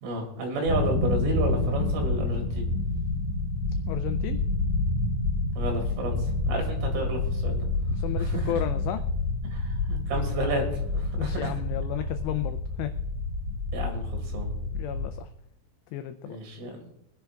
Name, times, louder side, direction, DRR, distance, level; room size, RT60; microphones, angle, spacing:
voice 1, 0.0-2.7 5.5-7.7 8.2-8.5 9.4-11.5 13.7-14.6 16.3-16.9, right 2 dB, 85° right, 2 dB, 4.8 m, -32 dB
sound 1, 0.6-15.1, left 2 dB, 55° right, 0.8 m, -28 dB
voice 2, 3.9-4.4 7.9-9.0 11.2-12.9 14.7-15.3 15.9-16.4, left 12 dB, 90° left, 9 dB, 2.4 m, -33 dB
23.5 x 11.0 x 2.3 m, 0.77 s
omnidirectional pair, 5.5 m